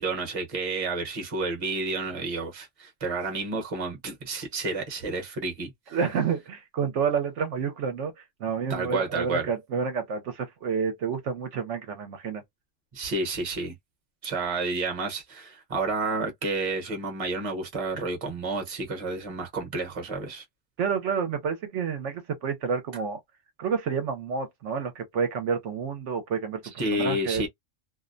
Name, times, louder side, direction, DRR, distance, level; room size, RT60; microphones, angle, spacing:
voice 1, 0.0-6.0 8.7-9.5 12.9-13.8 14.2-20.4 26.8-27.5, right 3 dB, 30° right, 0.8 m, -30 dB
voice 2, 5.9-12.4 20.8-23.2 23.6-26.6 26.9-27.4, right 6 dB, 70° right, 0.9 m, -29 dB
2.5 x 2.0 x 2.5 m
omnidirectional pair, 1.3 m